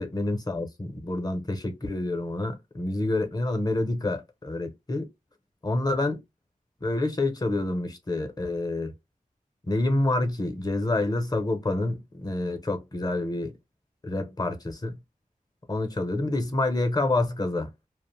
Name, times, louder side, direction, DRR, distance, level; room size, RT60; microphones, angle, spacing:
voice 1, 0.0-5.1 5.6-6.2 6.8-8.9 9.6-13.5 14.0-15.0 15.7-17.7, left 2 dB, 25° left, 0.6 m, -28 dB
2.4 x 2.0 x 3.0 m
wide cardioid pair, 60°, 15 cm